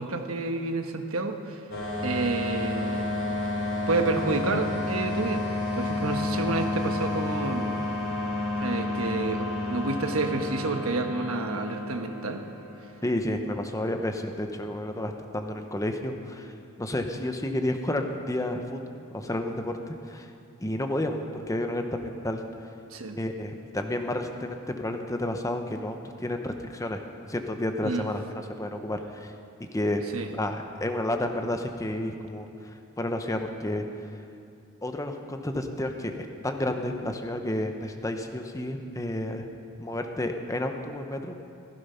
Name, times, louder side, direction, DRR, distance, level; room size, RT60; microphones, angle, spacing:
voice 1, 0.0-1.6 2.0-3.2 3.9-5.5 5.7-7.8 8.6-12.4 22.9-23.2 27.8-28.1 30.1-30.3, right 3 dB, 80° right, 6 dB, 1.2 m, -29 dB
sound 1, 1.7-13.1, left 2 dB, 65° left, 3.3 m, -30 dB
voice 2, 13.0-16.5 16.8-20.3 20.6-22.4 23.1-27.0 27.3-28.2 28.5-29.3 29.7-30.0 30.4-33.8 34.8-39.5 39.8-41.3, left 1 dB, 15° left, 5 dB, 0.9 m, -31 dB
15.0 x 15.0 x 5.7 m, 2.6 s
head